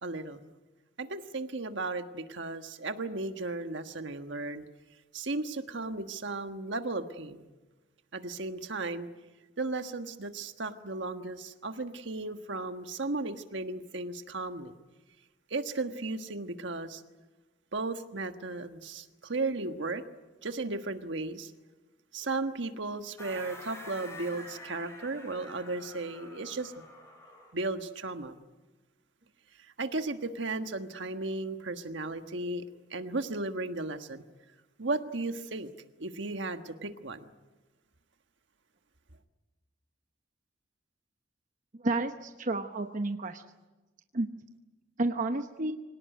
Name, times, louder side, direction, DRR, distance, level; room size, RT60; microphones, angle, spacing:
voice 1, 0.0-0.5 1.0-4.6 5.1-7.5 8.1-9.1 9.6-14.7 15.5-17.0 17.7-20.0 20.4-21.5 22.1-26.7 27.5-28.3 29.8-32.6 32.9-34.2 34.8-35.7 36.0-37.3, right 3 dB, 70° right, 7 dB, 1.4 m, -35 dB
sound 1, 23.2-27.6, left 1 dB, 15° left, 5.5 m, -48 dB
voice 2, 41.7-43.4 44.1-44.3 45.0-45.7, right 2 dB, 45° right, 6 dB, 0.9 m, -31 dB
25.5 x 18.0 x 9.2 m, 1.2 s
head